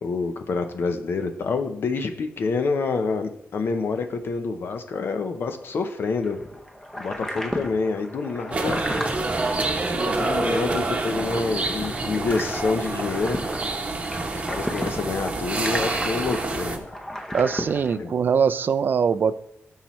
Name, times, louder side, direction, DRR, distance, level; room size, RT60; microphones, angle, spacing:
voice 1, 0.0-6.4 7.0-8.8 10.1-13.4 14.3-16.8 18.0-18.1, left 4 dB, 55° left, 7 dB, 0.7 m, -27 dB
sound 1, 6.2-18.0, equal, 10° left, 0.8 m, -35 dB
sound 2, 8.5-16.8, right 2 dB, 25° right, 0.9 m, -27 dB
voice 2, 17.3-19.4, right 6 dB, 45° right, 14 dB, 0.4 m, -22 dB
13.0 x 5.6 x 3.1 m, 0.76 s
wide cardioid pair, 175°, 5 cm